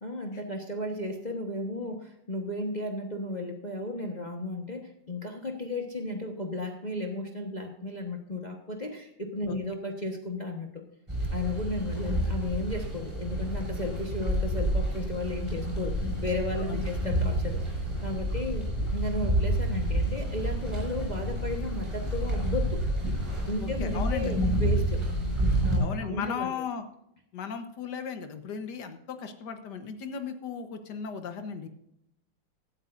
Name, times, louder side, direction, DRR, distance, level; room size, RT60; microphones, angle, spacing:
voice 1, 0.0-10.8 11.3-17.6 18.0-22.8 23.5-25.0 25.6-26.6, left 2 dB, 25° left, 2 dB, 1.3 m, -34 dB
sound 1, 11.1-25.8, right 1 dB, 15° right, 5.8 m, -29 dB
voice 2, 23.6-24.3 25.8-26.8 27.3-31.7, left 6 dB, 65° left, 8 dB, 1.8 m, -36 dB
17.0 x 12.5 x 2.6 m, 0.78 s
omnidirectional pair, 2.0 m